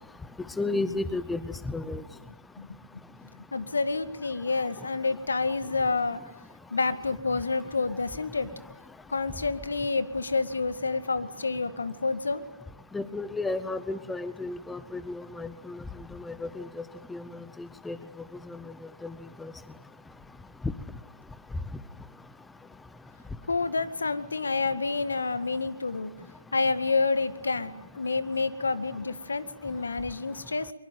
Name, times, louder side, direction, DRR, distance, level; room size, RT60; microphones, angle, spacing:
voice 1, 0.6-2.0 12.9-15.8 16.3-16.7 17.1-17.2 17.6-18.0 18.5-18.6 19.0-19.1 19.4-19.5, left 2 dB, 5° left, 14 dB, 0.9 m, -33 dB
voice 2, 3.5-6.2 6.7-8.5 9.1-12.4 23.5-26.1 26.5-30.7, left 3 dB, 80° left, 12 dB, 1.9 m, -28 dB
23.0 x 23.0 x 9.3 m, 1.0 s
hypercardioid pair, 145°, 0 cm